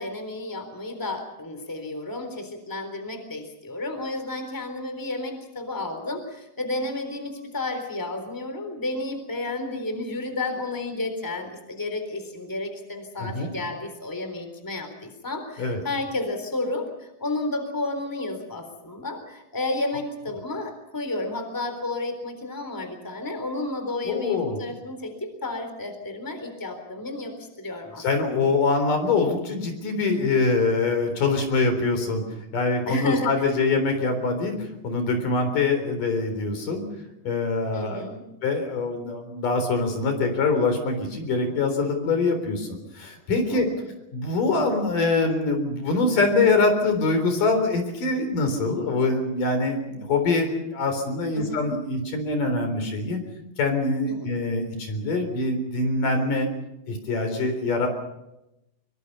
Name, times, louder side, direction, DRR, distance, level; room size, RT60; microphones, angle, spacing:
voice 1, 0.0-28.5 32.9-33.3 37.7-38.2 43.5-43.8 51.3-51.6 54.1-54.2, left 2 dB, 5° left, 7 dB, 3.5 m, -32 dB
voice 2, 13.2-13.5 15.6-15.8 24.1-24.6 28.0-32.2 32.5-36.8 37.2-38.0 38.4-42.7 43.0-43.7 44.1-53.2 53.6-56.5 56.9-57.9, left 3 dB, 70° left, 6 dB, 5.4 m, -24 dB
24.5 x 24.0 x 5.5 m, 0.89 s
omnidirectional pair, 3.9 m